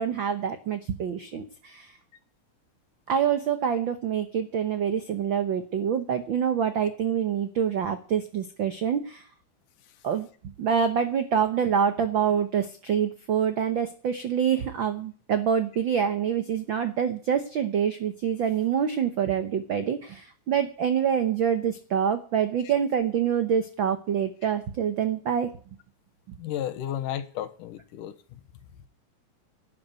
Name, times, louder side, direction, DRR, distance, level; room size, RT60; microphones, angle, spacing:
voice 1, 0.0-1.9 3.1-9.3 10.0-10.3 10.6-25.5 26.3-26.4, right 8 dB, 90° right, 9 dB, 1.0 m, -26 dB
voice 2, 26.4-28.1, left 11 dB, 85° left, 10 dB, 2.7 m, -32 dB
12.0 x 8.5 x 9.1 m, 0.42 s
omnidirectional pair, 3.7 m